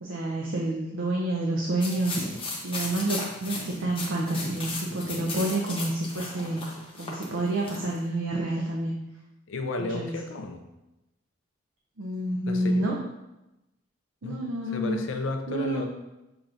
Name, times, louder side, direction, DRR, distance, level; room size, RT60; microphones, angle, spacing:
voice 1, 0.0-2.2 2.6-6.6 7.0-8.9 9.9-10.2 12.0-12.9 14.2-15.0 15.5-15.9, right 1 dB, 90° right, -2 dB, 0.6 m, -28 dB
sound 1, 1.8-8.0, left 2 dB, 25° left, 0.8 m, -36 dB
voice 2, 9.5-10.6 12.5-12.9 14.2-14.4 14.7-15.9, left 3 dB, 75° left, 5 dB, 0.5 m, -32 dB
6.8 x 3.0 x 2.5 m, 0.95 s
head